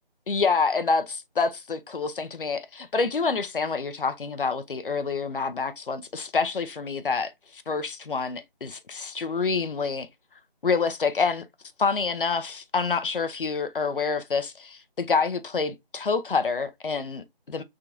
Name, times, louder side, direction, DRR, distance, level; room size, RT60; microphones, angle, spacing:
voice 1, 0.3-10.1 10.6-11.5 11.8-17.6, left 4 dB, 60° left, 0.6 m, -27 dB
3.7 x 3.5 x 2.6 m
figure-of-eight pair, 175°, 30 cm